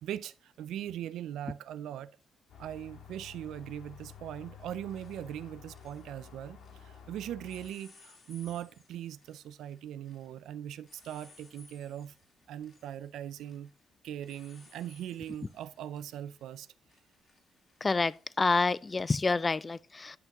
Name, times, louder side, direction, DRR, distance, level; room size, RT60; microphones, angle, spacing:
voice 1, 0.0-2.1 2.6-12.1 12.5-13.7 14.0-16.7, right 11 dB, 85° right, 0.4 m, -40 dB
sound 1, 2.2-2.3 4.0-4.3 4.6-7.0 7.4-19.2, left 3 dB, 50° left, 2.4 m, -62 dB
sound 2, 2.5-7.7, left 7 dB, 90° left, 1.6 m, -51 dB
voice 2, 17.8-20.2, left 3 dB, 25° left, 0.3 m, -28 dB
10.5 x 5.8 x 2.9 m
cardioid pair, 95°, 0 cm